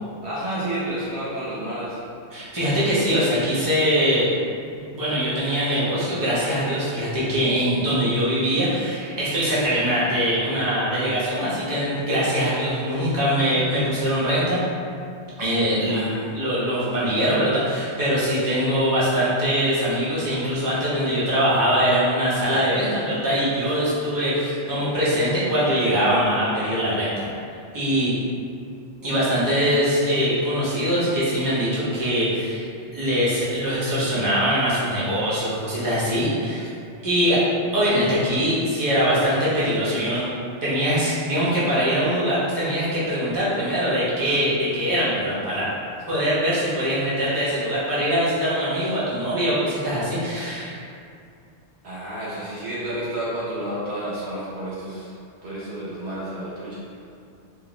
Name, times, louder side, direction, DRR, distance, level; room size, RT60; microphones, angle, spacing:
voice 1, 0.2-2.0 15.9-16.4 51.8-55.1 55.4-56.9, right 1 dB, 70° right, -8 dB, 1.1 m, -30 dB
voice 2, 2.3-4.3 4.7-14.6 15.4-16.1 16.3-27.3 27.7-28.1 29.0-32.7 32.9-36.7 37.0-37.4 37.7-40.2 40.6-45.7 46.1-50.8, equal, 25° right, -10 dB, 0.6 m, -22 dB
2.5 x 2.0 x 3.0 m, 2.4 s
omnidirectional pair, 1.2 m